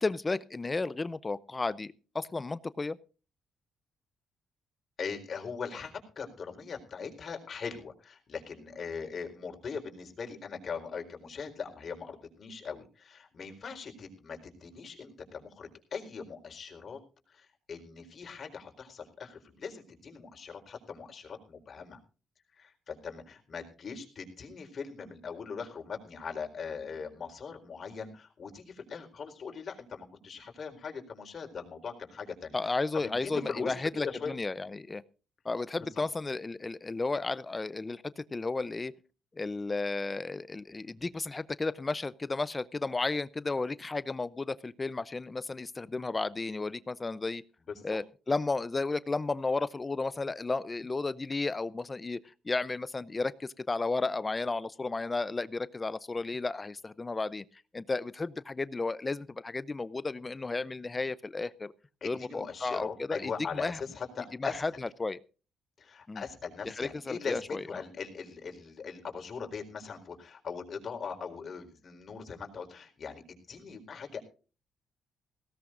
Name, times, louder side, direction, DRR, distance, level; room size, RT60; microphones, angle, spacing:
voice 1, 0.0-3.0 32.5-35.0 35.4-38.9 39.4-47.4 47.8-52.2 52.4-57.4 57.7-61.7 62.0-63.8 64.4-65.2 66.1-66.2 66.6-67.6, left 3 dB, 25° left, 18 dB, 0.6 m, -33 dB
voice 2, 5.0-17.0 17.3-22.0 22.5-33.7 34.0-34.3 35.9-36.0 47.7-48.0 62.0-64.8 65.8-74.3, left 5 dB, 50° left, 4 dB, 4.3 m, -40 dB
19.5 x 17.0 x 2.5 m, 0.35 s
cardioid pair, 90°, 0 cm